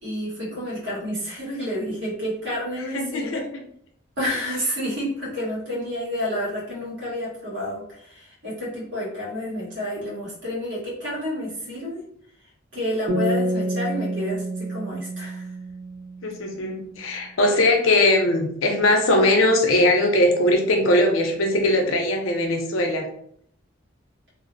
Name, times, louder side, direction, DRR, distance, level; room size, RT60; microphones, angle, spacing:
voice 1, 0.0-3.4 4.2-12.0 12.4-15.5, equal, 60° right, -7 dB, 1.3 m, -30 dB
voice 2, 2.9-3.4 16.2-23.1, left 1 dB, 80° left, 2 dB, 0.5 m, -20 dB
sound 1, 13.1-16.5, right 1 dB, 40° right, 0.5 m, -28 dB
2.6 x 2.0 x 2.5 m, 0.68 s
head